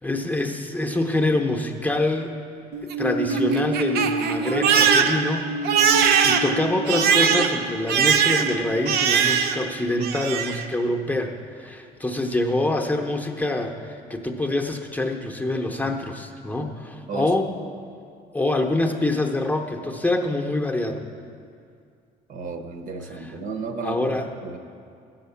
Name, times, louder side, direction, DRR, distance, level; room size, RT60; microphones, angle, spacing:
voice 1, 0.0-2.3 2.8-17.5 18.3-21.0 23.1-23.3 23.8-24.3, left 2 dB, 10° left, 1 dB, 0.8 m, -26 dB
Crying sobbing, 2.7-9.7 10.0-10.7, right 6 dB, 75° right, 0.7 m, -21 dB
voice 2, 22.3-24.6, right 4 dB, 50° right, 5 dB, 1.0 m, -33 dB
14.0 x 5.8 x 7.0 m, 2.4 s
cardioid pair, 110°, 17 cm